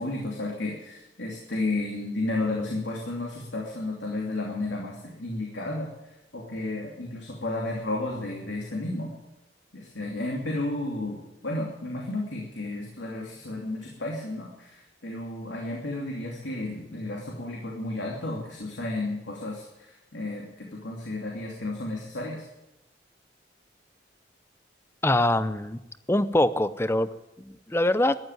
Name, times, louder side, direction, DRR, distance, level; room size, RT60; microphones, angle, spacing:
voice 1, 0.0-9.1 9.7-22.5, left 2 dB, 80° left, -1 dB, 2.8 m, -32 dB
voice 2, 25.0-25.8 26.1-27.1 27.4-28.2, left 1 dB, 15° left, 14 dB, 0.6 m, -23 dB
14.0 x 11.0 x 9.2 m, 0.94 s
head